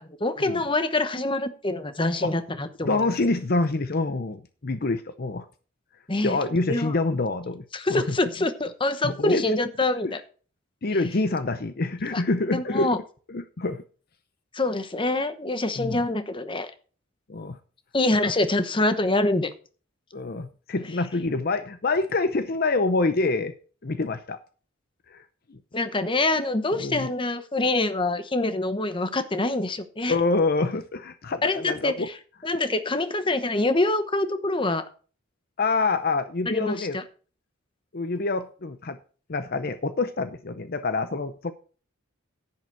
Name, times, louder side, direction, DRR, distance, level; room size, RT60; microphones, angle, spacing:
voice 1, 0.0-3.0 6.1-6.4 6.7-7.0 7.7-10.2 12.1-12.2 12.5-13.0 14.5-16.7 17.9-19.5 25.7-30.2 31.4-31.9 32.4-34.8 36.5-37.0, left 2 dB, 25° left, 1.0 m, -25 dB
voice 2, 2.8-5.5 6.2-7.6 7.9-8.0 9.0-9.4 10.0-10.1 10.8-13.0 13.3-13.8 15.8-16.0 17.3-17.6 18.2-18.3 20.1-23.5 23.8-24.4 25.1-25.2 25.5-25.6 26.7-27.1 30.1-32.1 35.6-37.0 37.9-39.0 39.3-41.5, left 3 dB, 45° left, 0.7 m, -26 dB
10.5 x 8.7 x 4.6 m
head